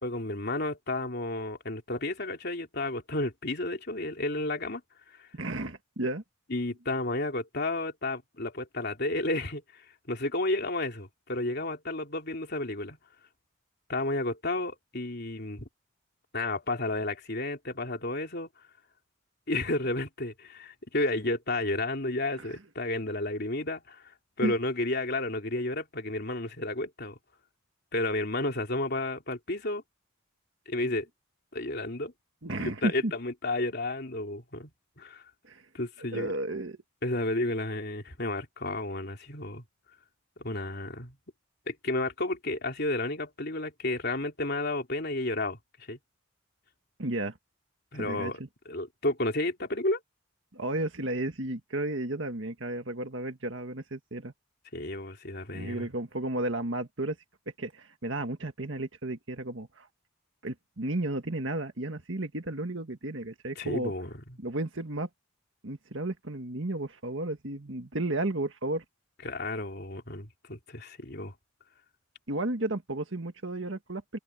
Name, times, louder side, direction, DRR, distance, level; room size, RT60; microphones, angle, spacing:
voice 1, 0.0-4.8 5.2-5.3 6.5-13.0 13.9-15.7 16.3-18.5 19.5-24.0 24.4-27.2 27.9-29.8 30.6-31.1 31.5-32.1 32.6-34.7 35.0-35.2 35.7-36.3 37.0-39.6 40.4-41.2 41.7-46.0 47.9-48.4 48.6-50.0 54.7-55.9 63.5-64.1 69.2-71.3, left 2 dB, 50° left, 3.4 m, -32 dB
voice 2, 5.3-6.2 22.4-22.6 24.4-24.5 32.4-33.1 35.4-35.7 36.1-36.8 47.0-47.4 47.9-48.5 50.5-54.3 55.5-57.2 57.6-59.9 60.4-63.9 64.4-65.1 65.6-68.8 72.3-74.2, right 2 dB, 60° right, 1.8 m, -33 dB
open air
head